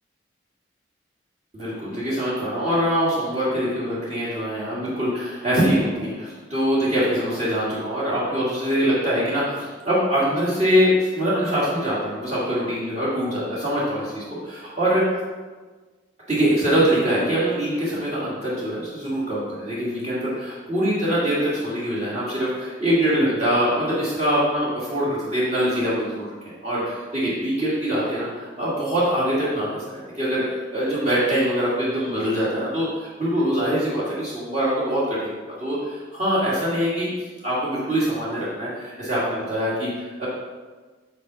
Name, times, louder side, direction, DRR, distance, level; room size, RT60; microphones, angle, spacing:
voice 1, 1.5-15.2 16.3-26.3 26.6-30.4 30.7-37.1 37.4-40.3, equal, 35° right, -8 dB, 1.7 m, -23 dB
5.4 x 3.9 x 5.4 m, 1.4 s
head